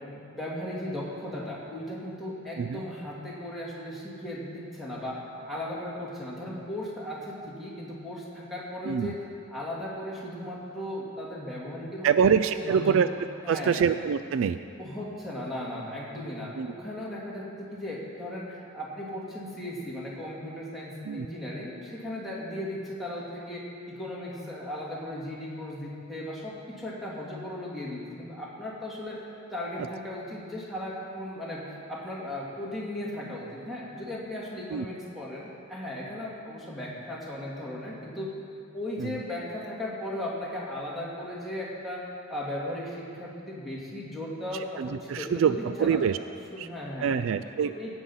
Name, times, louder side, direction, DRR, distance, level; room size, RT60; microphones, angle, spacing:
voice 1, 0.0-5.2 5.5-9.2 9.5-13.0 13.4-13.8 14.8-29.2 29.5-38.3 38.7-46.0 46.5-47.2 47.6-47.9, left 1 dB, ahead, -6 dB, 2.4 m, -36 dB
voice 2, 12.0-13.1 13.5-14.6 16.6-16.7 21.1-21.3 34.7-34.9 39.0-39.2 44.8-46.2 46.6-46.7 47.0-47.7, right 7 dB, 65° right, 12 dB, 0.3 m, -25 dB
16.5 x 8.0 x 5.6 m, 2.5 s
head